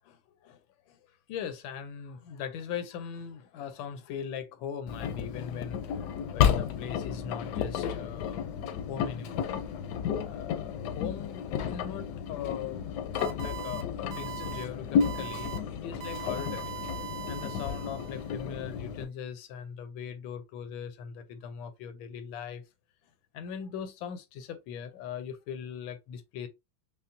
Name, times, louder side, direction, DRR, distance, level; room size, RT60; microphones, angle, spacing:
voice 1, 0.0-0.6 0.9-1.0 1.3-6.0 6.3-8.5 8.9-9.5 10.2-12.9 13.4-16.8 17.3-22.6 23.3-26.5, left 7 dB, 90° left, 1.4 m, -40 dB
Engine, 4.9-19.0, left 8 dB, 75° left, 1.0 m, -32 dB
sound 1, 13.2-13.8 14.1-14.6 15.0-15.6 16.0-18.3, right 11 dB, 70° right, 1.1 m, -40 dB
5.5 x 2.0 x 2.6 m
omnidirectional pair, 2.1 m